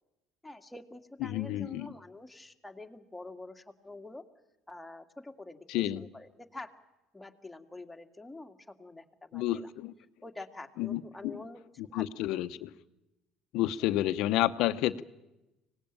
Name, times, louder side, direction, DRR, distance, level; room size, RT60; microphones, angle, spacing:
voice 1, 0.4-4.2 4.7-6.7 7.1-9.7 10.2-12.0 13.8-13.9, left 2 dB, 10° left, 3 dB, 2.1 m, -47 dB
voice 2, 1.2-1.9 5.7-6.1 9.3-9.9 10.8-11.4 11.8-12.7 13.5-15.0, left 14 dB, 70° left, 13 dB, 0.8 m, -30 dB
25.0 x 18.5 x 9.1 m, 1.0 s
supercardioid pair, 75°, 0 cm